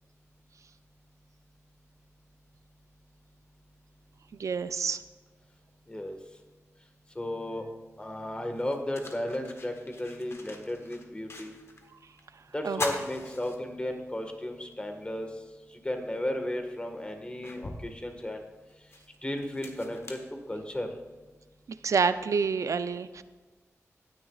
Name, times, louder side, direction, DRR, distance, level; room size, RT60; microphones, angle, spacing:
voice 1, 4.4-5.0 12.6-12.8 21.8-23.2, right 5 dB, 75° right, 13 dB, 0.4 m, -27 dB
voice 2, 7.1-7.6 8.0-11.6 12.5-15.3 15.8-18.4 19.2-20.2 20.5-20.9, left 1 dB, 20° left, 4 dB, 1.6 m, -34 dB
sound 1, 7.9-8.0 8.5-11.9 12.2-12.3 12.7-14.2 14.6-14.7 16.1-16.2 16.8-21.0, left 2 dB, 55° left, 1.3 m, -42 dB
15.5 x 9.8 x 2.4 m, 1.3 s
wide cardioid pair, 70°, 5 cm